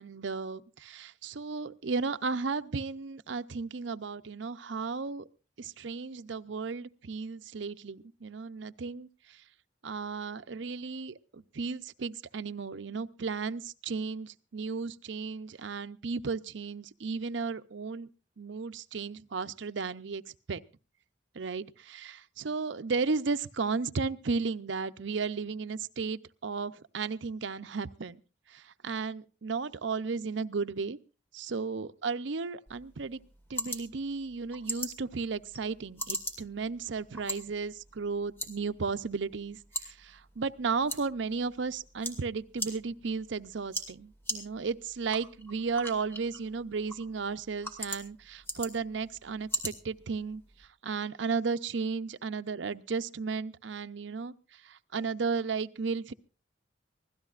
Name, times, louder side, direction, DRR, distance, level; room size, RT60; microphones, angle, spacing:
voice 1, 0.0-5.3 5.6-9.1 9.8-18.1 18.4-20.2 20.5-20.6 21.3-28.2 28.5-31.0 31.3-33.2 33.5-39.6 39.9-50.4 50.8-54.3 54.6-56.1, right 4 dB, 75° right, 12 dB, 0.6 m, -34 dB
sound 1, 32.7-50.7, equal, 10° left, 2.1 m, -42 dB
24.0 x 16.5 x 2.5 m, 0.32 s
head